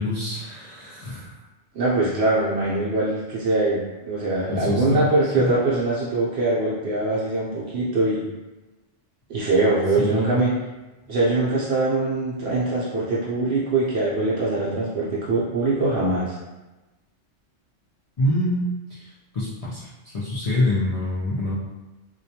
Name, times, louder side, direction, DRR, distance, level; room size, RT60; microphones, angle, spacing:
voice 1, 0.0-1.4 4.5-5.1 5.3-5.5 10.0-10.4 18.2-19.9 20.1-21.6, left 1 dB, 70° left, -9 dB, 0.3 m, -26 dB
voice 2, 1.7-8.3 9.3-10.5 11.1-16.4, right 2 dB, 65° right, -6 dB, 0.7 m, -22 dB
2.3 x 2.2 x 2.7 m, 1.1 s
omnidirectional pair, 1.3 m